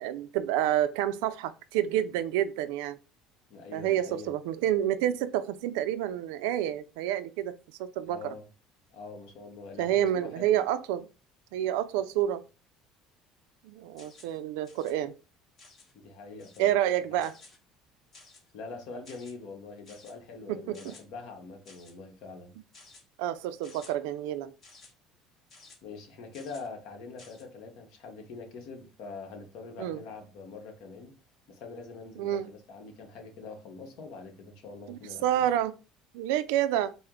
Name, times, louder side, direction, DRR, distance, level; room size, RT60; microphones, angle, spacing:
voice 1, 0.0-3.0 3.7-7.5 7.8-8.3 9.8-11.1 11.5-12.4 13.6-15.1 16.6-17.3 20.5-20.9 23.2-24.5 29.8-30.0 32.2-32.5 34.9-35.7 36.1-36.9, right 11 dB, 90° right, 0.4 m, -29 dB
voice 2, 3.5-4.3 8.0-8.5 8.9-10.7 15.9-16.7 17.1-17.2 18.5-22.5 25.8-31.2 31.5-35.5, left 4 dB, 65° left, 1.0 m, -44 dB
sound 1, 14.0-14.4 14.6-14.9 15.6-15.9 16.4-16.7 17.2-17.6 18.1-18.5 19.0-19.3 19.9-20.1 20.7-21.0 21.6-21.9 22.7-23.0 23.6-23.9 24.6-24.9 25.5-25.8 26.3-26.7 27.2-27.4, left 3 dB, 35° left, 1.3 m, -54 dB
4.4 x 2.1 x 3.6 m
cardioid pair, 135°, 0 cm